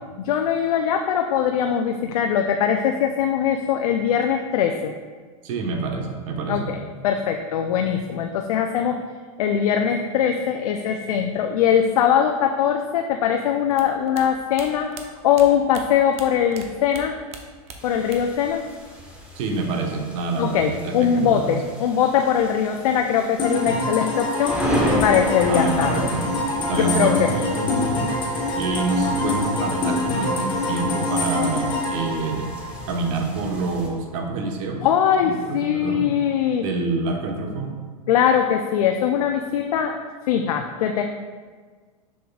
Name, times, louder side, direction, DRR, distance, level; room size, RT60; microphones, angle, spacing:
voice 1, 0.2-4.9 6.5-9.0 9.4-14.9 15.2-17.2 17.8-18.6 20.4-24.6 25.0-26.1 26.7-27.3 34.8-36.6 38.1-41.0, left 8 dB, 80° left, 4 dB, 0.5 m, -21 dB
voice 2, 5.4-6.7 19.3-21.6 25.4-26.3 26.7-28.0 28.5-32.6 32.9-34.9 35.2-36.1 36.6-37.7, right 3 dB, 60° right, 2 dB, 1.1 m, -27 dB
sound 1, 13.7-16.7 16.9-18.4 18.7-19.5, right 6 dB, 35° right, 0.8 m, -41 dB
sound 2, 17.8-33.9, right 1 dB, 5° right, 1.1 m, -34 dB
sound 3, 23.4-33.1, left 2 dB, 25° left, 1.4 m, -25 dB
6.8 x 6.4 x 2.4 m, 1.5 s
hypercardioid pair, 120°, 19 cm